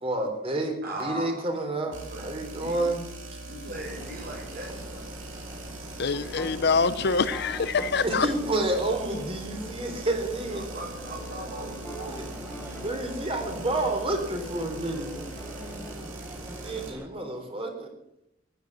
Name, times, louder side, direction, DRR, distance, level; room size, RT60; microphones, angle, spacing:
voice 1, 0.0-3.0 8.0-10.6 12.8-15.1 16.6-17.9, right 2 dB, 30° right, 4 dB, 3.6 m, -29 dB
voice 2, 0.8-1.8 2.1-3.0 3.5-5.1 10.5-12.3, right 1 dB, 50° right, 0 dB, 6.9 m, -39 dB
sound 1, 1.9-16.9, right 2 dB, 75° right, 3.4 m, -41 dB
sound 2, 3.7-17.1, equal, 10° right, 1.5 m, -44 dB
voice 3, 6.0-8.3, left 4 dB, 55° left, 14 dB, 0.7 m, -25 dB
sound 3, 6.0-15.9, left 1 dB, 10° left, 2.9 m, -44 dB
15.0 x 11.0 x 7.5 m, 0.81 s
head